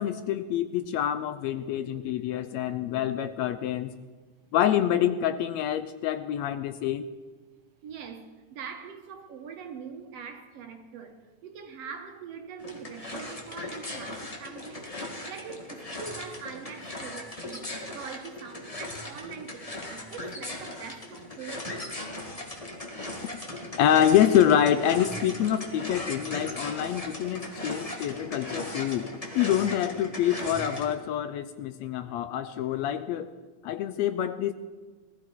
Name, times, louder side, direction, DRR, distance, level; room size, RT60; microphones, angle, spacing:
voice 1, 0.0-3.9 4.5-7.0 23.8-33.3 33.6-34.5, left 10 dB, 75° left, 11 dB, 1.7 m, -26 dB
voice 2, 7.8-22.0, right 6 dB, 65° right, 6 dB, 1.9 m, -43 dB
sound 1, 12.6-30.9, left 1 dB, 20° left, 0.9 m, -38 dB
19.0 x 14.0 x 4.6 m, 1.4 s
omnidirectional pair, 3.4 m